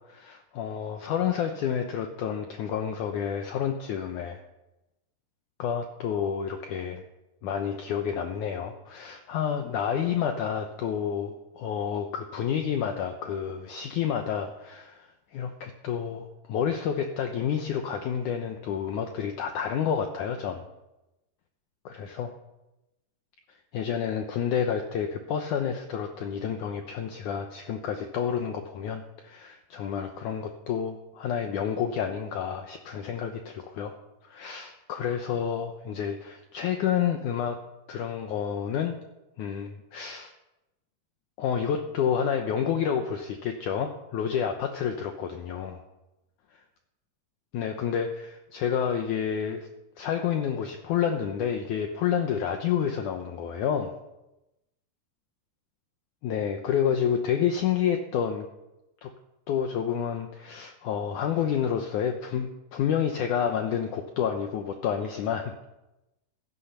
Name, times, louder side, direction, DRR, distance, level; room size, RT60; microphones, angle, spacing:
voice 1, 0.1-4.4 5.6-7.0 7.4-20.7 21.9-22.3 23.7-33.9 34.2-37.6 37.9-39.0 39.4-40.3 41.4-45.8 47.5-49.7 50.0-53.9 56.2-58.5 59.0-59.1 59.5-65.5, left 8 dB, 75° left, 5 dB, 1.9 m, -29 dB
16.0 x 12.5 x 5.6 m, 0.96 s
omnidirectional pair, 4.7 m